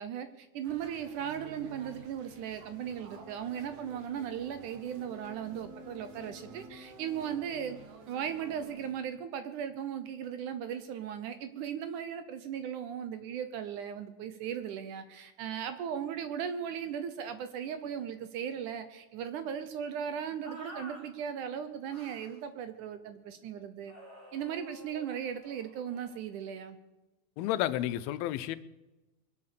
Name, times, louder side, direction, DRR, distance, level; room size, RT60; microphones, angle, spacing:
voice 1, 0.0-7.8 8.1-23.9 24.3-26.8, right 8 dB, 70° right, 10 dB, 2.0 m, -37 dB
sound 1, 0.6-8.9, right 4 dB, 50° right, 2.3 m, -50 dB
sound 2, 20.4-21.0 21.9-22.4 23.9-26.2, right 1 dB, 5° right, 4.1 m, -49 dB
voice 2, 27.4-28.6, left 13 dB, 90° left, 13 dB, 2.6 m, -31 dB
23.0 x 8.5 x 6.7 m, 1.0 s
omnidirectional pair, 4.3 m